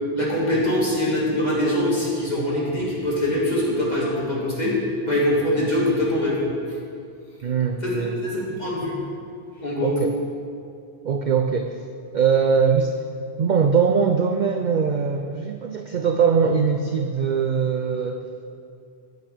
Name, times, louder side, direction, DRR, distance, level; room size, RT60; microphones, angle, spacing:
voice 1, 0.1-4.7 5.0-6.4 8.0-9.0 9.6-9.9, left 1 dB, 35° left, -6 dB, 2.9 m, -23 dB
voice 2, 7.4-8.2 9.8-10.1 11.0-11.8 12.1-12.9 13.4-18.3, right 6 dB, 55° right, 5 dB, 0.5 m, -21 dB
14.5 x 6.7 x 5.1 m, 2.4 s
omnidirectional pair, 1.2 m